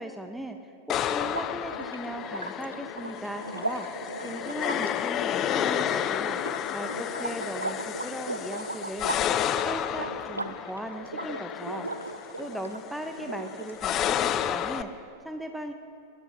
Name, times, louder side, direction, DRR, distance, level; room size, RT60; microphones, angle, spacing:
voice 1, 0.0-3.9 4.2-6.4 6.7-9.3 9.6-11.9 12.4-15.7, right 1 dB, ahead, 6 dB, 0.7 m, -38 dB
sound 1, 0.9-14.8, left 10 dB, 30° left, 0.5 m, -31 dB
sound 2, 1.2-12.8 13.2-14.0, right 2 dB, 80° right, 0.5 m, -37 dB
22.5 x 18.0 x 2.7 m, 2.5 s
figure-of-eight pair, 90°, 0 cm